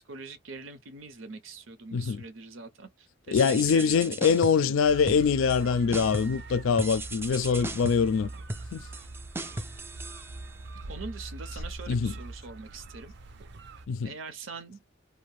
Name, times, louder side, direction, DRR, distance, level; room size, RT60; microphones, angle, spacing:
voice 1, 0.0-4.1 4.6-4.7 10.9-13.1 14.0-14.8, right 4 dB, 85° right, 0.9 m, -43 dB
voice 2, 1.9-2.2 3.3-8.3 8.7-8.8 11.9-12.1 13.9-14.1, left 6 dB, 85° left, 0.4 m, -24 dB
sound 1, 3.4-4.7 5.1-5.6 5.9-6.4 6.8-10.8, right 2 dB, 10° right, 0.3 m, -37 dB
sound 2, 4.8-13.8, right 2 dB, 60° right, 0.5 m, -42 dB
2.6 x 2.2 x 3.2 m
head